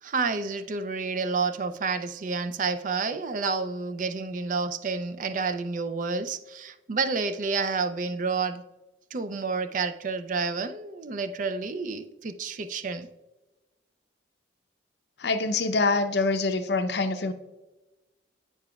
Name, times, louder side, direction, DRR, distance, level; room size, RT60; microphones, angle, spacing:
voice 1, 0.0-8.6 9.1-13.1, right 4 dB, 45° right, 0.4 m, -29 dB
voice 2, 15.2-17.3, left 3 dB, 65° left, 0.6 m, -25 dB
8.4 x 6.9 x 2.3 m
head